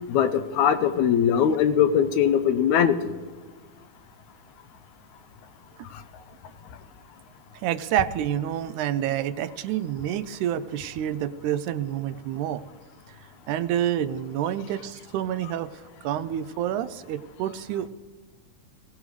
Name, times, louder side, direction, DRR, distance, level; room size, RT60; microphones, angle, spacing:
voice 1, 0.1-3.1, left 8 dB, 75° left, 10 dB, 2.0 m, -21 dB
voice 2, 7.6-12.6 13.5-15.7 16.0-17.9, right 11 dB, 80° right, 13 dB, 1.9 m, -28 dB
21.5 x 17.5 x 3.2 m, 1.4 s
omnidirectional pair, 3.6 m